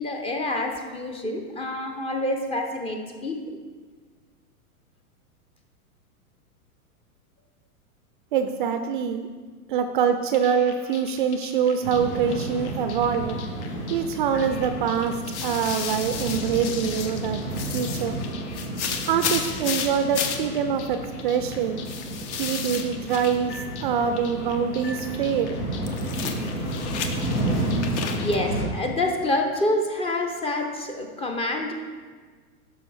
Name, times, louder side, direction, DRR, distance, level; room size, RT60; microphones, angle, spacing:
voice 1, 0.0-3.6 28.1-31.7, left 1 dB, 15° left, 4 dB, 0.5 m, -27 dB
voice 2, 8.3-9.3 9.7-13.4 13.9-17.4 17.7-18.2 19.1-21.8 22.4-25.6, right 7 dB, 35° right, 8 dB, 0.4 m, -25 dB
sound 1, 10.3-28.4, left 6 dB, 50° left, 1.0 m, -35 dB
sound 2, 11.8-28.7, right 1 dB, 80° left, 2.1 m, -32 dB
12.5 x 5.5 x 3.2 m, 1.5 s
figure-of-eight pair, 100°, 44 cm